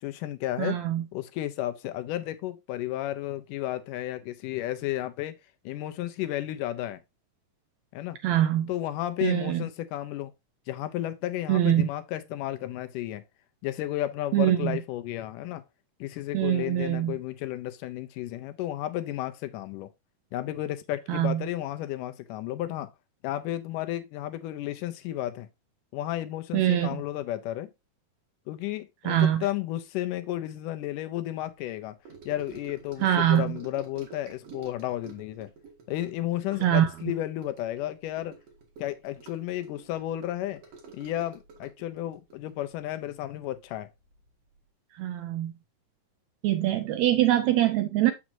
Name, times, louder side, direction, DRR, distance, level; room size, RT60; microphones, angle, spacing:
voice 1, 0.0-0.8 1.1-5.4 5.7-7.0 7.9-8.2 8.7-10.3 10.7-13.2 13.6-15.6 16.0-19.9 20.3-22.9 23.2-25.5 25.9-27.7 28.5-32.0 32.3-35.5 35.9-38.4 38.8-40.6 40.9-43.9 46.9-47.0, left 14 dB, 80° left, 2.2 m, -33 dB
voice 2, 0.6-1.0 8.2-8.7 9.2-9.6 11.5-11.9 14.3-14.8 16.3-17.1 21.1-21.5 26.5-26.9 29.1-29.4 33.0-33.4 36.6-36.9 45.0-45.5 46.4-48.1, right 12 dB, 75° right, 1.7 m, -23 dB
Gurgling / Sink (filling or washing) / Trickle dribble, 32.0-43.7 44.0-44.3 44.6-44.7, right 4 dB, 55° right, 2.8 m, -49 dB
7.2 x 6.2 x 2.7 m
omnidirectional pair, 3.8 m